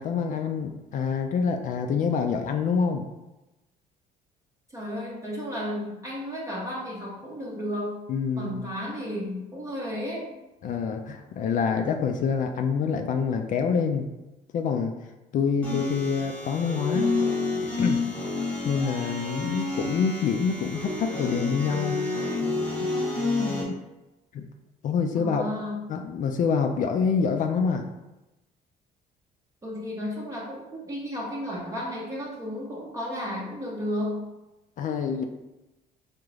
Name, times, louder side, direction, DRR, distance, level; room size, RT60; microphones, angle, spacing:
voice 1, 0.0-3.0 8.1-8.6 10.6-14.1 14.5-14.9 15.3-17.2 17.8-18.0 18.6-22.0 22.8-22.9 24.3-24.4 24.8-25.4 25.9-27.8 34.8-35.2, left 6 dB, 50° left, 4 dB, 0.4 m, -26 dB
voice 2, 4.7-8.0 8.4-10.3 25.2-25.8 29.6-34.3, equal, 20° right, -4 dB, 0.6 m, -33 dB
sound 1, 15.6-23.6, left 3 dB, 10° left, 1.1 m, -29 dB
3.6 x 2.5 x 3.1 m, 1.0 s
cardioid pair, 110°, 17 cm